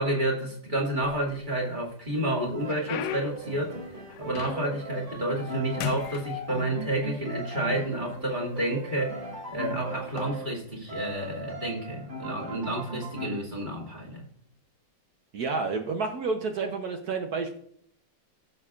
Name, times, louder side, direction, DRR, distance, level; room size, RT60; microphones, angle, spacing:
voice 1, 0.0-14.3, right 1 dB, 25° right, -2 dB, 2.3 m, -30 dB
sound 1, 0.9-1.7 2.2-4.9 5.3-5.5 5.8-7.0 7.8-7.9 8.6-8.9 10.0-10.2, left 10 dB, 80° left, 1.3 m, -37 dB
Piano, 2.5-10.6 10.9-13.3, right 2 dB, 80° right, 3.7 m, -39 dB
voice 2, 15.3-17.6, right 4 dB, 65° right, 4 dB, 1.3 m, -30 dB
15.5 x 6.8 x 2.4 m, 0.64 s
omnidirectional pair, 1.9 m